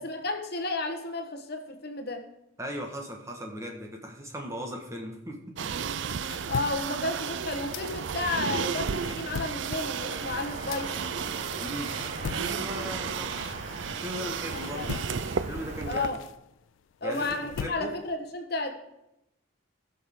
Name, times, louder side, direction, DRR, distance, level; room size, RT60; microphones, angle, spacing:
voice 1, 0.0-2.3 6.5-11.0 15.9-16.2 17.0-18.7, left 2 dB, 55° left, 4 dB, 1.2 m, -32 dB
voice 2, 2.6-5.5 11.6-11.9 12.3-13.5 13.9-15.0 15.5-16.2 17.0-17.9, equal, 15° right, 1 dB, 1.6 m, -38 dB
sound 1, 5.6-16.1, right 6 dB, 70° right, 0.5 m, -33 dB
sound 2, 5.9-8.4 8.7-14.0 14.4-18.2, left 7 dB, 75° left, 0.3 m, -41 dB
sound 3, 10.0-15.9, right 2 dB, 35° right, 1.4 m, -42 dB
19.5 x 6.5 x 3.7 m, 0.87 s
head